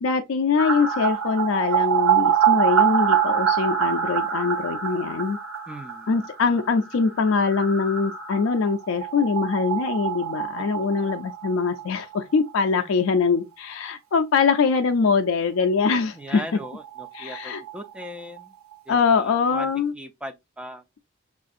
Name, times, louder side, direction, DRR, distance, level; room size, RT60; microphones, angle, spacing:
voice 1, 0.0-5.4 6.1-16.4 17.1-17.6 18.9-19.9, left 5 dB, 65° left, 0.4 m, -23 dB
sound 1, 0.6-12.2 12.5-12.6 12.8-12.9 15.9-16.0 16.3-16.4 16.6-18.4 18.7-18.8, right 8 dB, 70° right, 0.7 m, -25 dB
voice 2, 5.7-6.1 10.6-11.2 12.8-12.9 16.1-18.5 18.9-20.8, equal, 5° right, 0.4 m, -39 dB
6.1 x 2.4 x 2.5 m
head